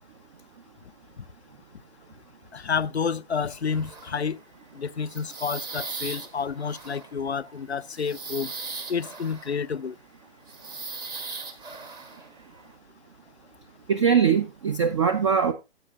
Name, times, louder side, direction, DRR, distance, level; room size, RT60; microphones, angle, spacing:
voice 1, 2.5-4.4 4.7-8.5 8.9-9.9, left 6 dB, 85° left, 0.6 m, -29 dB
sound 1, 3.5-4.5 4.8-9.9 10.5-12.7, right 4 dB, 15° right, 1.0 m, -39 dB
voice 2, 13.9-15.5, right 7 dB, 30° right, 0.6 m, -21 dB
14.5 x 8.2 x 2.3 m
figure-of-eight pair, 130°, 32 cm